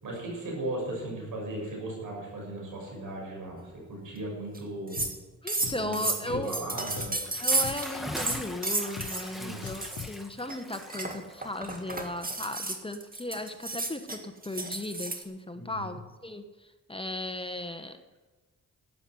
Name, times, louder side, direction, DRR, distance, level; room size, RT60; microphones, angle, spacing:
voice 1, 0.0-5.1 5.6-7.2 9.4-9.6 15.5-16.0, right 1 dB, 85° right, -1 dB, 6.3 m, -37 dB
sound 1, 4.6-4.7 4.9-5.2 5.5-9.3 9.7-10.1 10.5-15.2, right 2 dB, 25° right, 2.0 m, -32 dB
Drum, 5.0-5.1 5.6-5.9 6.3-6.4 7.0-7.2 7.6-7.8 8.3-8.6 9.0-9.1 9.6-10.2, left 8 dB, 65° left, 1.1 m, -40 dB
voice 2, 5.4-6.5 7.4-18.0, left 1 dB, 15° left, 8 dB, 1.1 m, -36 dB
Bathtub (filling or washing) / Splash splatter, 7.2-13.1, left 1 dB, ahead, 1.9 m, -42 dB
12.5 x 9.5 x 7.7 m, 1.2 s
cardioid pair, 60°, 32 cm